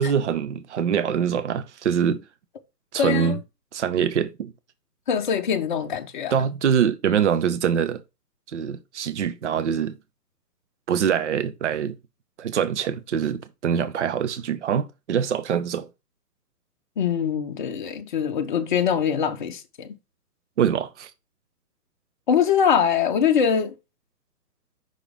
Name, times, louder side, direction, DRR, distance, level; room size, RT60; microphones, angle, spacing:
voice 1, 0.0-2.2 2.9-3.4 3.7-4.5 6.3-8.0 8.5-10.0 10.9-12.0 12.4-15.9 20.6-21.1, right 8 dB, 45° right, 0.8 m, -24 dB
voice 2, 3.0-3.4 5.1-6.5 17.0-20.0 22.3-23.7, left 7 dB, 30° left, 0.8 m, -23 dB
5.9 x 4.8 x 3.5 m
figure-of-eight pair, 130°, 48 cm